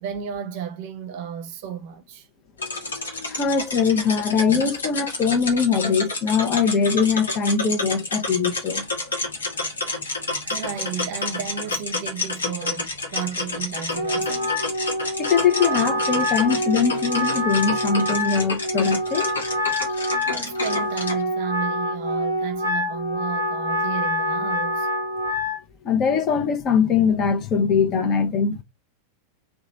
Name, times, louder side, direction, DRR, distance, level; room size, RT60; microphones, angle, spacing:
voice 1, 0.0-2.3 10.4-14.6 20.3-24.9, right 8 dB, 50° right, 0.7 m, -33 dB
sound 1, 2.6-21.2, left 3 dB, 70° left, 1.1 m, -30 dB
voice 2, 3.3-8.8 15.2-19.3 25.8-28.6, left 6 dB, 35° left, 0.8 m, -21 dB
Wind instrument woodwind instrument, 13.9-25.6, equal, 85° left, 0.8 m, -26 dB
3.0 x 2.4 x 3.9 m
figure-of-eight pair, 90°, 0 cm